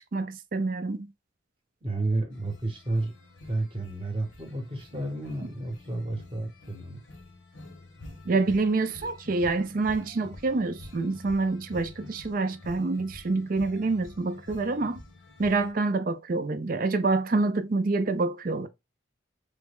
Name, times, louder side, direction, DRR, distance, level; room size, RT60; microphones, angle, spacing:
voice 1, 0.1-1.1 8.3-15.0 15.4-18.7, right 3 dB, 45° right, 0.4 m, -27 dB
voice 2, 1.8-3.1 3.4-7.0, right 2 dB, 25° right, 0.9 m, -31 dB
sound 1, 2.3-15.7, left 2 dB, 70° left, 0.9 m, -48 dB
3.4 x 2.2 x 3.4 m
head